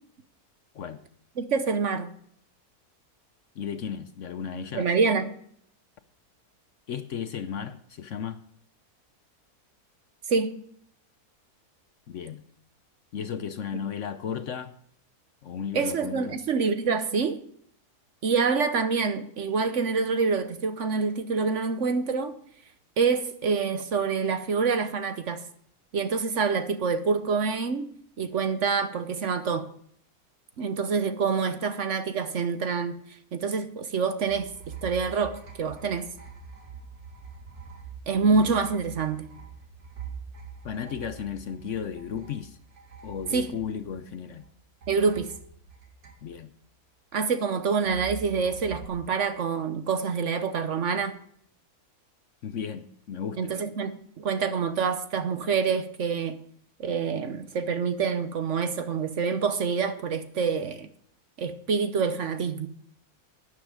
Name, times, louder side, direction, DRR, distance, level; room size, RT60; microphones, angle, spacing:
voice 1, 1.4-2.1 4.7-5.3 10.3-10.6 15.7-17.4 18.2-22.4 23.0-25.4 25.9-27.9 28.2-29.7 30.6-33.0 33.3-36.1 38.1-39.3 43.3-43.5 44.9-45.3 47.1-51.2 53.4-56.4 56.8-60.9 61.4-62.7, right 5 dB, 55° right, 1.1 m, -26 dB
voice 2, 3.6-4.9 6.9-8.4 12.1-12.4 13.1-14.8 15.4-16.4 40.6-42.6 43.0-44.5 46.2-46.5 52.4-53.5, left 7 dB, 60° left, 0.9 m, -34 dB
sound 1, 34.2-44.5 44.8-46.6 47.8-48.9, right 6 dB, 75° right, 2.7 m, -44 dB
12.0 x 9.7 x 5.0 m
omnidirectional pair, 1.7 m